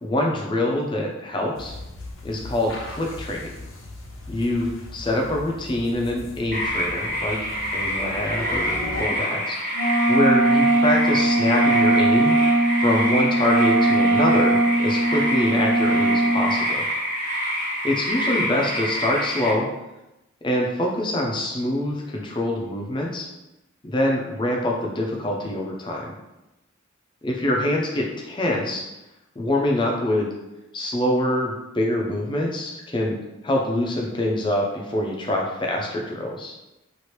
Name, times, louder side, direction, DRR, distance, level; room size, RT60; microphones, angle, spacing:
voice 1, 0.0-1.7 2.2-3.5 4.3-7.4 7.7-12.4 12.8-16.9 17.8-19.7 20.4-23.3 23.8-26.1 27.2-28.8 29.4-30.3 30.7-33.2 33.4-36.5, left 1 dB, 25° left, -1 dB, 0.4 m, -25 dB
sound 1, 1.5-9.0, left 1 dB, 80° left, 0.6 m, -37 dB
sound 2, 6.5-19.5, equal, 40° right, 0.9 m, -27 dB
Wind instrument woodwind instrument, 9.7-16.5, right 1 dB, 80° right, 0.5 m, -20 dB
2.9 x 2.5 x 3.1 m, 0.95 s
head